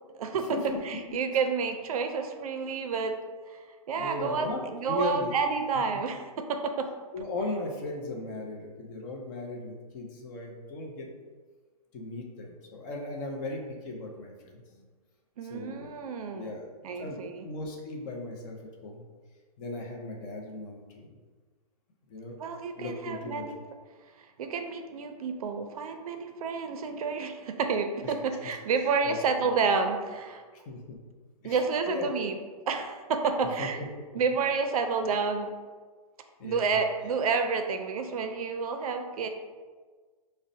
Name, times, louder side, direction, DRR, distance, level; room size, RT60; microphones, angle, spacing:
voice 1, 0.2-0.6 0.8-3.2 3.5-6.8 15.4-16.5 16.8-17.4 22.4-23.6 24.2-30.4 31.4-32.4 32.7-33.8 34.1-35.5 36.4-39.3, right 5 dB, 65° right, 6 dB, 0.4 m, -30 dB
voice 2, 3.9-5.3 7.1-11.1 11.9-14.8 15.5-16.0 16.3-16.7 17.0-19.0 19.6-21.2 22.1-22.4 22.8-23.6 28.0-28.1 28.4-28.6 29.0-29.5 30.5-31.0 31.4-32.1 33.6-33.7 36.4-36.8, left 2 dB, 30° left, 0 dB, 0.5 m, -37 dB
5.0 x 2.1 x 2.6 m, 1.5 s
hypercardioid pair, 150°, 20 cm